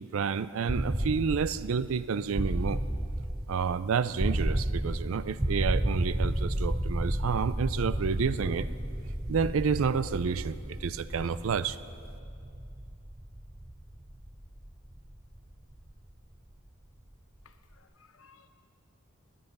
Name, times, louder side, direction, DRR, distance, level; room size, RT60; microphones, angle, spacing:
voice 1, 0.0-2.8 3.5-8.7 9.3-11.8, right 6 dB, 75° right, 0.4 m, -30 dB
sound 1, 0.7-16.5, right 1 dB, 10° right, 0.5 m, -33 dB
voice 2, 17.4-18.5, left 5 dB, 70° left, 0.8 m, -60 dB
17.5 x 10.5 x 5.4 m
head